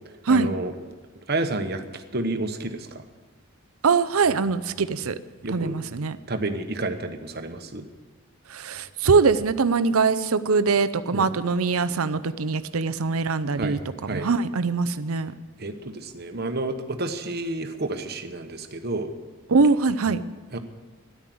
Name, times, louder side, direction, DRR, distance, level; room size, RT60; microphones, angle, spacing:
voice 1, 0.3-0.7 1.3-3.0 5.4-5.8 6.3-7.8 11.1-11.3 13.6-13.8 14.1-14.3 15.6-19.1 20.5-20.6, right 2 dB, 45° right, 7 dB, 1.1 m, -30 dB
voice 2, 3.8-5.1 5.5-6.2 8.5-13.8 14.1-15.3 19.5-20.2, right 4 dB, 85° right, 12 dB, 0.7 m, -22 dB
13.0 x 10.5 x 7.7 m, 1.4 s
head